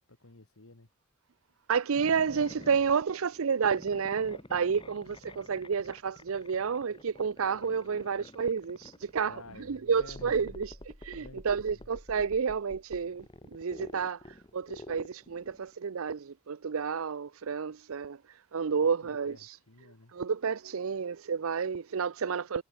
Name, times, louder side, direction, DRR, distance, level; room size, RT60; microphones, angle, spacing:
voice 1, 0.1-0.9 9.1-10.6 11.1-11.9 19.3-20.1, left 2 dB, 75° left, 2.0 m, -52 dB
voice 2, 1.7-9.4 9.7-10.8 11.0-13.3 13.5-19.6 20.1-22.6, right 6 dB, 70° right, 0.5 m, -30 dB
sound 1, 1.9-15.7, left 1 dB, 20° left, 2.0 m, -50 dB
head